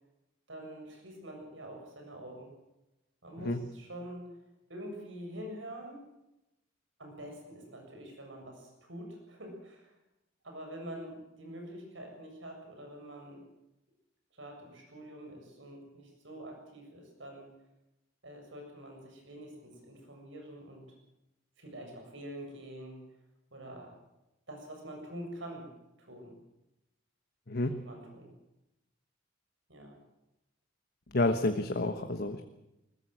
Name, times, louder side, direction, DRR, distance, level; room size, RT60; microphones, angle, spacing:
voice 1, 0.5-2.5 3.2-4.2 4.7-6.0 7.0-9.9 10.4-13.4 14.3-17.5 18.2-20.9 21.6-23.1 23.5-24.0 24.5-25.7 26.0-26.4 27.7-28.3 29.7-30.0, right 1 dB, 70° right, 3 dB, 7.5 m, -46 dB
voice 2, 27.5-27.8 31.1-32.4, left 2 dB, 55° left, 7 dB, 1.3 m, -30 dB
21.0 x 20.5 x 7.7 m, 0.90 s
head